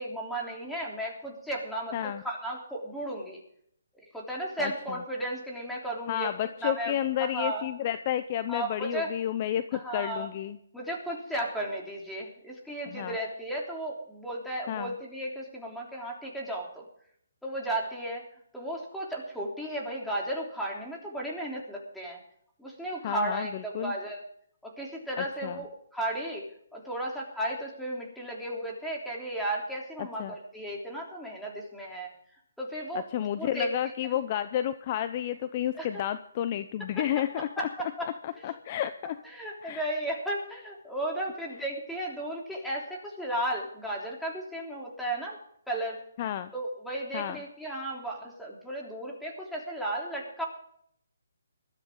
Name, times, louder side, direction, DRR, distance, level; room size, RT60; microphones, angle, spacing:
voice 1, 0.0-3.4 4.1-6.3 6.6-7.7 8.5-9.1 9.7-10.3 10.7-16.8 17.4-18.2 18.5-22.2 22.6-24.2 24.6-26.4 26.7-32.1 32.6-33.7 35.8-36.0 37.1-38.1 38.4-38.5 39.2-45.4 45.7-46.0 46.5-50.5, right 1 dB, ahead, -3 dB, 3.4 m, -34 dB
voice 2, 1.9-2.2 4.6-5.0 6.1-10.6 12.9-13.2 14.7-14.9 23.0-23.9 25.2-25.6 30.2-30.3 33.1-37.7 38.2-39.2 39.6-39.9 46.2-46.5 47.1-47.4, left 11 dB, 35° left, 12 dB, 0.7 m, -31 dB
20.5 x 13.5 x 3.8 m, 0.67 s
hypercardioid pair, 155°, 0 cm